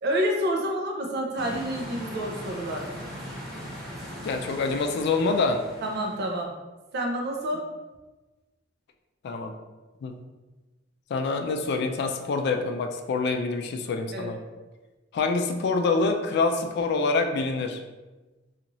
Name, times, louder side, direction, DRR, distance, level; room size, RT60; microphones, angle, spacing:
voice 1, 0.0-2.9 5.8-6.5 6.9-7.7 14.1-14.3, equal, 60° right, 1 dB, 0.5 m, -28 dB
sound 1, 1.4-6.4, equal, ahead, 0.8 m, -39 dB
voice 2, 4.2-5.6 9.2-9.5 10.0-10.2 11.1-14.4 15.1-17.8, left 3 dB, 60° left, 5 dB, 0.3 m, -26 dB
2.6 x 2.4 x 3.0 m, 1.2 s
head